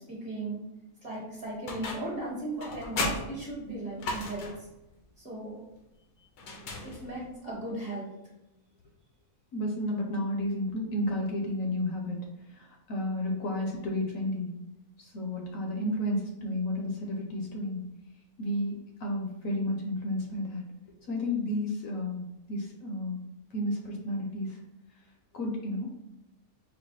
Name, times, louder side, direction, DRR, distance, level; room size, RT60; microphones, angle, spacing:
voice 1, 0.1-0.6 1.0-4.5 5.2-5.6 6.8-8.1, right 2 dB, 30° right, -4 dB, 1.3 m, -37 dB
sound 1, 1.7-2.2 2.6-4.7 6.4-7.3, left 2 dB, 85° left, 1.3 m, -35 dB
voice 2, 9.5-12.2 12.5-14.5 15.0-17.9 18.4-20.6 21.1-23.2 23.5-24.6 25.3-25.9, left 1 dB, 65° left, 1 dB, 1.0 m, -32 dB
4.6 x 2.3 x 4.0 m, 0.92 s
omnidirectional pair, 1.6 m